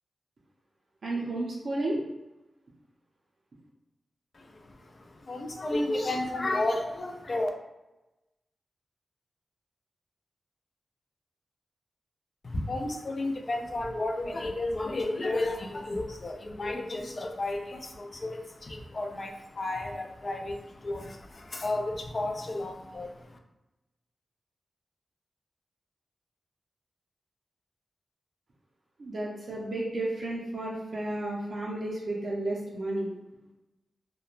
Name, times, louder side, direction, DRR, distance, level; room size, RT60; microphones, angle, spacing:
voice 1, 1.0-2.0 29.0-33.1, right 1 dB, 55° right, -4 dB, 0.5 m, -32 dB
voice 2, 4.3-7.5 12.4-23.4, left 2 dB, 40° left, 3 dB, 0.3 m, -32 dB
2.9 x 2.1 x 2.4 m, 0.99 s
wide cardioid pair, 140°, 0 cm